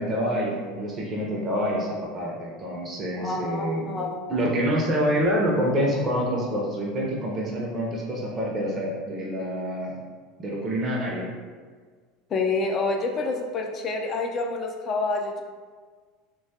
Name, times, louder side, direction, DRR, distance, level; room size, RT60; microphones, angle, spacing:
voice 1, 0.0-3.8 4.3-10.0 10.4-11.3, equal, 30° right, -3 dB, 0.6 m, -27 dB
voice 2, 3.1-4.3 12.3-15.4, left 3 dB, 40° left, 2 dB, 0.3 m, -28 dB
3.1 x 2.2 x 2.7 m, 1.5 s
figure-of-eight pair, 75°, 0 cm